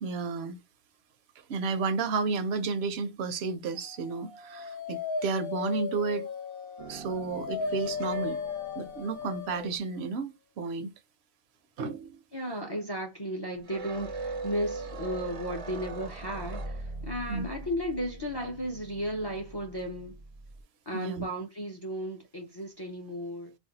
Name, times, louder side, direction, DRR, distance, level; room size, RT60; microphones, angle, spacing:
voice 1, 0.0-0.6 1.5-6.3 6.9-8.4 8.8-10.9 11.8-12.2 17.3-17.4 20.9-21.2, right 4 dB, 75° right, 0.8 m, -32 dB
Dog, 4.1-9.7, left 5 dB, 60° left, 0.8 m, -36 dB
sound 1, 6.8-9.8 13.5-20.6, right 2 dB, 45° right, 0.4 m, -41 dB
voice 2, 12.3-20.2 20.9-23.6, equal, 35° left, 0.4 m, -34 dB
2.4 x 2.1 x 3.9 m
omnidirectional pair, 1.1 m